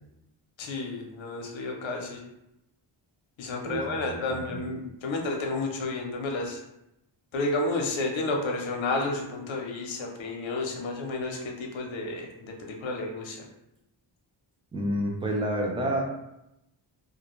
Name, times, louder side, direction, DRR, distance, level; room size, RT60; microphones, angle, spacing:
voice 1, 0.6-2.2 3.4-6.6 7.3-13.5, left 2 dB, 70° left, 1 dB, 0.7 m, -31 dB
voice 2, 3.6-4.4 14.7-16.0, right 1 dB, 15° right, 0 dB, 0.3 m, -29 dB
2.4 x 2.2 x 2.9 m, 0.87 s
wide cardioid pair, 130°, 47 cm